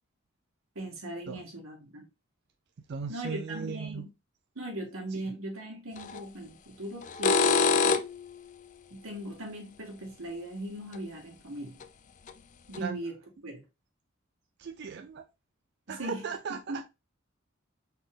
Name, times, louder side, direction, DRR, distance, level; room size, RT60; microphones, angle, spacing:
voice 1, 0.8-2.1 3.1-4.1 4.6-8.0 8.9-11.8 12.7-13.6 15.9-16.8, right 1 dB, 90° right, 1.9 m, -39 dB
voice 2, 2.9-4.1 5.1-5.2 12.8-13.0 14.6-15.2 15.9-16.8, right 6 dB, 50° right, 0.4 m, -37 dB
sound 1, 6.0-6.2 7.0-8.3 10.9-11.0 11.8-11.9 12.3-12.4 12.7-12.8, left 5 dB, 35° left, 0.3 m, -24 dB
4.2 x 3.6 x 3.4 m
head